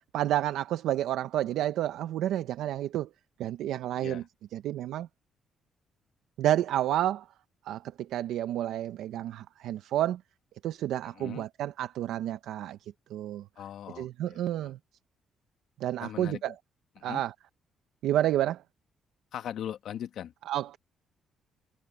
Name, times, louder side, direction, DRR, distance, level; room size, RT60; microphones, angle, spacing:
voice 1, 0.1-3.1 3.4-4.2 4.5-5.1 6.4-7.2 7.7-10.2 10.6-12.8 13.1-13.4 14.0-14.8 15.8-16.5 17.0-17.3 18.0-18.6 20.5-20.8, right 12 dB, 85° right, 0.7 m, -30 dB
voice 2, 11.0-11.5 13.5-14.7 16.0-16.4 17.0-17.2 19.3-20.3, left 10 dB, 75° left, 1.6 m, -40 dB
cardioid pair, 90°, 0 cm